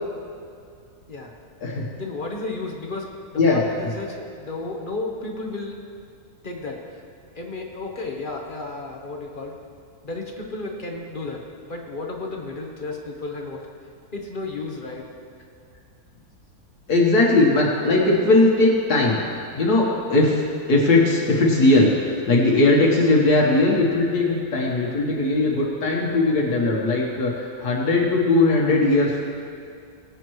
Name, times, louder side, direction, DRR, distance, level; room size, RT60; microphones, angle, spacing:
voice 1, 2.0-5.8 6.4-7.0 7.3-9.6 10.0-13.7 14.1-15.1, left 3 dB, 35° left, 1 dB, 1.1 m, -33 dB
voice 2, 16.9-19.2 19.6-29.2, left 2 dB, 75° left, -3 dB, 1.8 m, -19 dB
21.5 x 8.2 x 3.1 m, 2.3 s
omnidirectional pair, 1.7 m